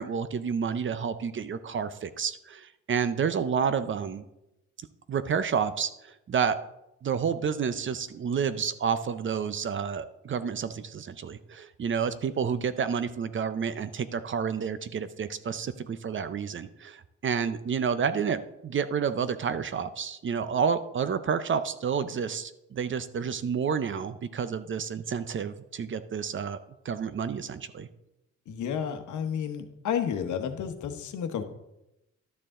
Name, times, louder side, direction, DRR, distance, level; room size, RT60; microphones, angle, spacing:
voice 1, 0.0-4.2 5.1-6.6 7.0-26.6 26.8-27.9, right 6 dB, 40° right, 13 dB, 0.7 m, -30 dB
voice 2, 28.5-31.4, left 8 dB, 75° left, 7 dB, 1.1 m, -31 dB
12.0 x 6.7 x 3.7 m, 0.88 s
cardioid pair, 90°, 30 cm